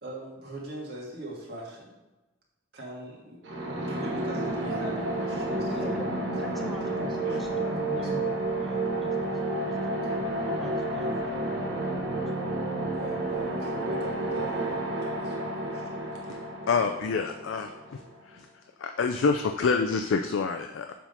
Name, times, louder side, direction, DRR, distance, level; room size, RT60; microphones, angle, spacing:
voice 1, 0.0-2.0 2.7-3.4 3.9-8.3 12.4-12.5 12.9-16.2, right 1 dB, 55° right, -3 dB, 1.8 m, -43 dB
sound 1, 3.4-18.1, right 2 dB, 75° right, 1.3 m, -31 dB
voice 2, 5.7-6.0 6.3-11.5 11.8-12.4, left 1 dB, ahead, 1 dB, 0.7 m, -42 dB
voice 3, 16.7-18.5 18.8-20.9, left 4 dB, 90° left, 5 dB, 0.4 m, -27 dB
7.3 x 3.6 x 5.4 m, 1.1 s
head